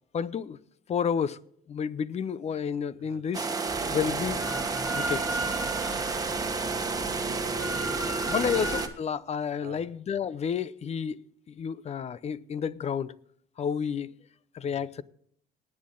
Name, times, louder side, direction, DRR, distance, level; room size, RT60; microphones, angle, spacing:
voice 1, 0.1-0.6 0.9-1.4 1.7-3.5 3.9-4.4 4.9-5.5 5.8-6.0 8.3-13.1 13.6-14.2 14.5-15.0, left 7 dB, 40° left, 0.6 m, -31 dB
sound 1, 3.3-8.9, right 4 dB, 20° right, 1.4 m, -31 dB
Drill, 3.7-8.8, right 1 dB, 5° right, 3.1 m, -36 dB
voice 2, 7.2-8.5 9.6-9.8 14.6-14.9, right 9 dB, 65° right, 1.4 m, -48 dB
19.0 x 8.7 x 3.8 m
cardioid pair, 110°, 17 cm